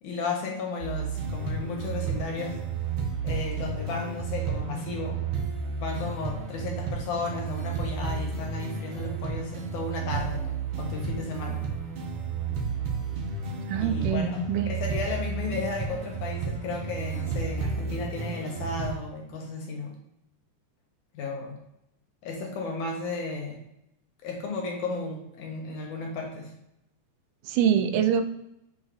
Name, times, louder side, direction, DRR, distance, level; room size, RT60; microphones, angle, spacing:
voice 1, 0.0-2.7 3.2-5.3 5.8-11.6 13.8-20.0 21.1-21.6 22.2-23.7 24.2-26.5, left 3 dB, 70° left, 1 dB, 2.4 m, -34 dB
sound 1, 0.8-18.9, right 5 dB, 65° right, 1.5 m, -32 dB
voice 2, 13.7-14.7 27.5-28.3, right 8 dB, 80° right, 7 dB, 2.2 m, -24 dB
6.4 x 5.9 x 2.5 m, 0.82 s
omnidirectional pair, 3.9 m